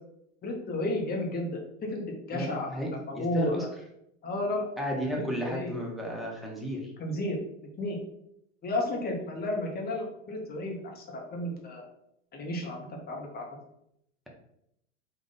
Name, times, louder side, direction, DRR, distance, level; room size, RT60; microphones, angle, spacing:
voice 1, 0.4-1.5 1.8-2.7 3.1-3.7 4.2-4.7 5.4-5.7 7.0-7.4 7.8-8.0 8.6-11.8 12.3-12.8 13.1-13.5, left 1 dB, 25° left, 1 dB, 1.0 m, -32 dB
voice 2, 2.3-3.7 4.8-6.9, equal, ahead, -2 dB, 0.9 m, -33 dB
3.6 x 2.5 x 3.9 m, 0.78 s
hypercardioid pair, 100°, 39 cm